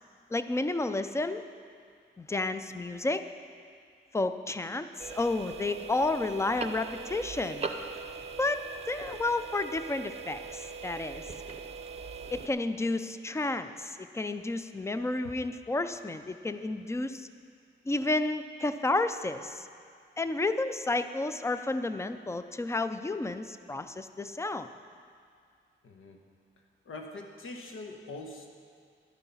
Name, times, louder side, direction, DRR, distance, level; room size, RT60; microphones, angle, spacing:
voice 1, 0.3-1.4 2.2-3.3 4.1-7.7 8.4-11.2 12.3-17.3 17.9-19.7 20.2-24.7, left 2 dB, 15° left, 10 dB, 0.4 m, -31 dB
sound 1, 5.0-12.5, right 4 dB, 30° right, 0.6 m, -40 dB
voice 2, 25.8-26.2 26.6-28.5, left 2 dB, 85° left, 3 dB, 1.2 m, -43 dB
11.5 x 8.4 x 5.6 m, 2.2 s
wide cardioid pair, 150°, 20 cm